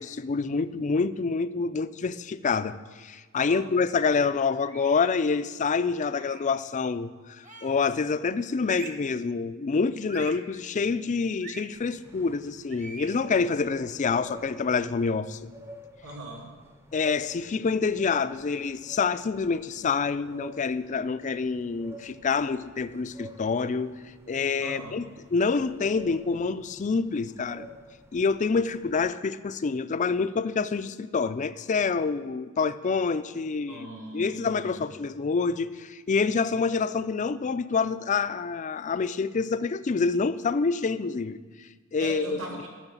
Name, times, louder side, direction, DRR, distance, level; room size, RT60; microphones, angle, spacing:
voice 1, 0.0-15.5 16.9-23.9 24.3-25.0 25.3-27.7 28.1-33.9 34.1-42.4, left 4 dB, 35° left, 13 dB, 0.4 m, -27 dB
voice 2, 3.3-3.7 16.0-16.5 24.6-25.0 33.7-34.8 42.0-42.7, right 1 dB, 70° right, -1 dB, 2.5 m, -40 dB
sound 1, 4.6-5.1 6.1-6.5 7.4-7.9 8.6-9.1 10.1-10.5 11.4-11.7 12.7-13.2, right 3 dB, 35° right, 1.2 m, -43 dB
sound 2, 11.7-29.1, equal, 10° right, 0.7 m, -50 dB
10.5 x 6.5 x 8.1 m, 1.4 s
head